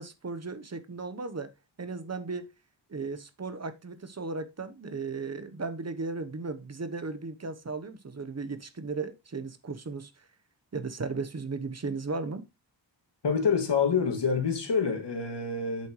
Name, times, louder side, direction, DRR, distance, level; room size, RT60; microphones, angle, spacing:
voice 1, 0.0-1.5 1.8-2.5 2.9-10.1 10.7-12.5, right 4 dB, 35° right, 1.0 m, -36 dB
voice 2, 13.2-15.9, left 5 dB, 65° left, 2.5 m, -27 dB
8.6 x 6.8 x 3.1 m
wide cardioid pair, 150°, 46 cm